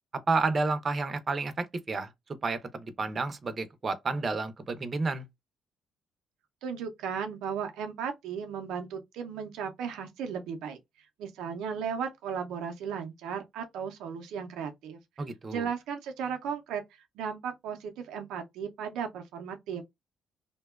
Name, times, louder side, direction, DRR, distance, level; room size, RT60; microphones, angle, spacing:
voice 1, 0.3-2.1 2.4-5.2 15.2-15.7, right 3 dB, 40° right, 0.5 m, -30 dB
voice 2, 6.6-10.8 11.2-15.0 15.5-19.8, right 7 dB, 90° right, 0.4 m, -35 dB
2.6 x 2.2 x 2.3 m
cardioid pair, 90°, 0 cm